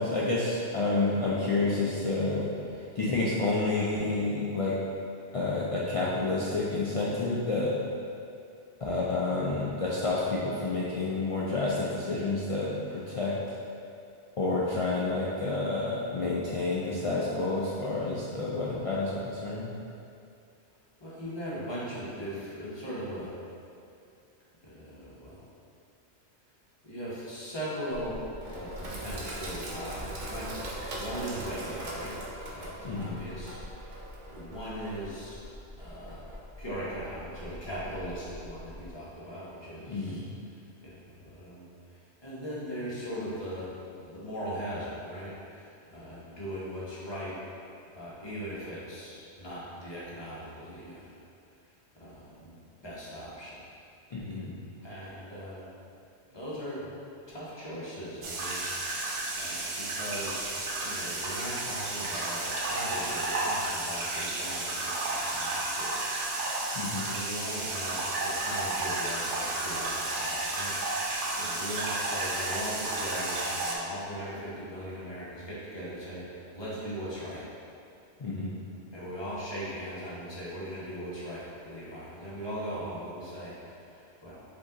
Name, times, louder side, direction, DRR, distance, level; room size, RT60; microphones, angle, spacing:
voice 1, 0.0-4.8 5.3-7.7 8.8-13.3 14.4-19.7 32.8-33.2 39.9-40.3 54.1-54.6 66.8-67.1 78.2-78.5, left 3 dB, 60° left, -6 dB, 0.3 m, -29 dB
voice 2, 21.0-23.3 24.6-25.4 26.8-28.2 28.5-32.1 32.5-34.0 34.2-35.4 35.8-36.2 36.6-40.2 40.8-43.7 44.0-47.4 47.9-51.2 52.0-52.6 52.8-53.6 54.8-55.7 56.3-56.9 57.3-58.6 59.3-66.0 67.0-71.1 71.4-77.4 78.9-84.4, equal, 25° left, -9 dB, 1.1 m, -39 dB
Sink (filling or washing), 27.9-38.9, right 1 dB, 50° right, 0.8 m, -41 dB
sound 1, 58.2-73.8, right 2 dB, 90° right, 1.0 m, -32 dB
5.1 x 2.8 x 3.8 m, 2.5 s
omnidirectional pair, 1.2 m